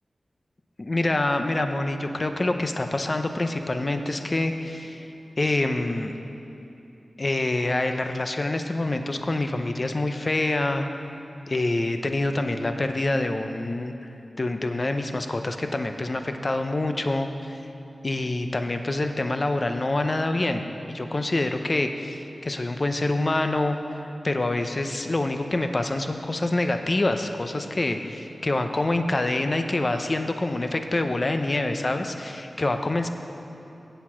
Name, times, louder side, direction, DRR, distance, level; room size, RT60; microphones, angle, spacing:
voice 1, 0.8-5.1 5.4-6.1 7.2-10.9 11.5-13.9 14.4-17.6 18.0-20.6 20.9-23.8 24.2-33.1, left 2 dB, 45° left, 7 dB, 0.7 m, -26 dB
8.2 x 8.1 x 6.2 m, 3.0 s
cardioid pair, 55°, 0 cm